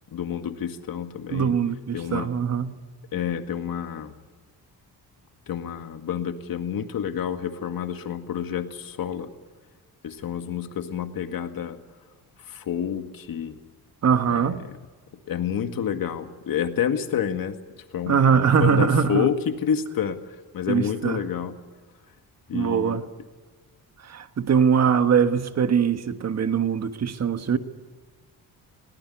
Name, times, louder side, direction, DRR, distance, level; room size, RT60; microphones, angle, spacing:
voice 1, 0.1-1.6 1.9-2.3 3.1-4.1 5.5-9.3 10.0-11.8 12.5-13.6 14.3-14.8 15.3-17.5 17.9-20.2 20.5-21.6 22.5-23.0, left 8 dB, 60° left, 2.0 m, -29 dB
voice 2, 1.3-2.7 14.0-14.6 18.1-19.3 20.7-21.2 22.5-23.1 24.0-27.6, right 7 dB, 40° right, 1.4 m, -22 dB
21.5 x 18.5 x 10.0 m
cardioid pair, 135°, 38 cm